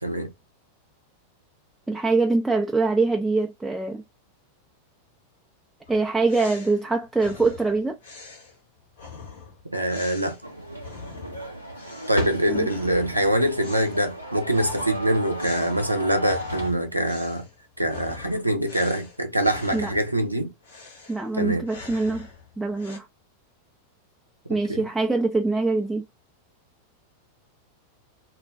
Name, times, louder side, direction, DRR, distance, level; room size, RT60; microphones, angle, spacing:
voice 1, 0.0-0.3 9.6-10.4 12.1-17.5 17.8-20.5 21.3-21.7 24.5-24.9, right 1 dB, 85° right, 0.5 m, -24 dB
voice 2, 1.9-4.0 5.9-8.0 12.5-12.7 19.7-19.9 21.1-22.3 22.6-23.1 24.5-26.1, right 3 dB, 5° right, 0.4 m, -24 dB
sound 1, 5.9-11.5 11.7-12.3 12.6-20.2 20.6-23.0, left 4 dB, 70° left, 1.1 m, -44 dB
sound 2, 10.4-16.7, equal, 90° left, 0.8 m, -34 dB
2.4 x 2.2 x 3.4 m
figure-of-eight pair, 90°, 0 cm